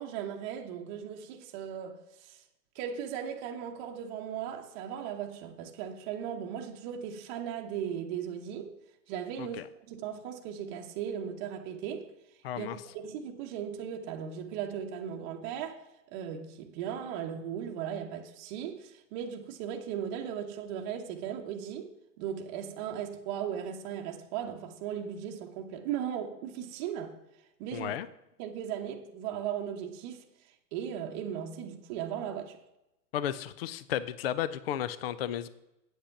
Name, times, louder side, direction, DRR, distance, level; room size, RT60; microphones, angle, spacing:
voice 1, 0.0-2.4 2.7-8.7 9.1-9.6 9.9-12.1 12.6-15.8 16.1-27.1 27.6-28.0 28.4-30.2 30.7-32.6, right 9 dB, 30° right, 0.9 m, -37 dB
voice 2, 12.4-12.8 27.7-28.1 33.1-35.5, left 11 dB, 40° left, 0.4 m, -33 dB
8.7 x 7.9 x 5.8 m
hypercardioid pair, 135°, 50 cm